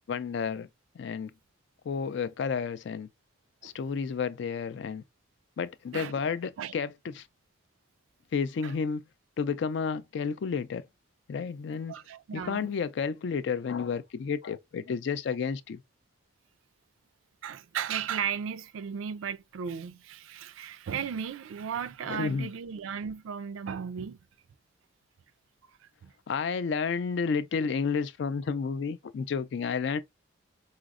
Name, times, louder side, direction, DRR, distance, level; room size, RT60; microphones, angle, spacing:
voice 1, 0.1-0.7 1.0-1.3 1.9-3.1 3.6-5.0 5.6-7.3 8.3-9.0 9.4-10.8 11.3-11.9 12.3-15.8 22.1-22.5 26.3-30.0, left 5 dB, 60° left, 0.3 m, -31 dB
voice 2, 5.9-6.7 8.6-8.7 11.9-12.7 17.4-24.2 26.0-26.1, right 7 dB, 75° right, 0.3 m, -35 dB
4.9 x 2.0 x 2.4 m
head